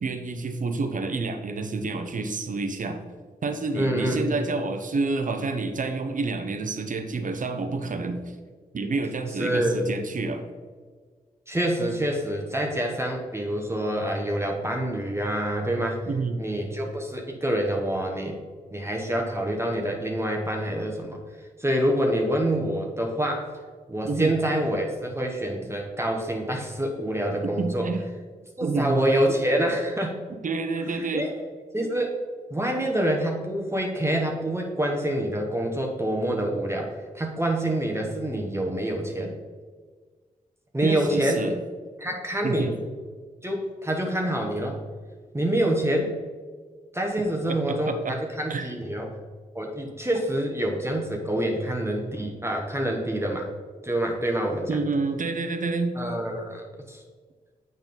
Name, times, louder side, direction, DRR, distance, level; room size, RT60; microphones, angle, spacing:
voice 1, 0.0-3.0 3.4-8.2 8.7-10.5 16.1-16.4 24.0-24.3 27.4-28.0 28.6-29.0 30.4-31.3 40.8-41.6 42.4-42.8 47.5-48.1 48.5-48.7 54.7-56.0, right 3 dB, 55° right, 7 dB, 0.9 m, -28 dB
voice 2, 3.7-4.4 9.4-9.8 11.5-16.0 16.4-18.4 18.7-21.2 21.6-23.5 23.9-27.9 28.6-30.2 31.0-31.3 31.7-32.1 32.5-39.4 40.7-41.5 42.0-42.7 43.4-44.8 45.3-46.1 46.9-49.1 49.5-53.5 53.8-54.8 56.0-57.0, right 1 dB, 15° right, 0 dB, 1.2 m, -26 dB
7.3 x 5.3 x 3.9 m, 1.5 s
supercardioid pair, 40°, 16 cm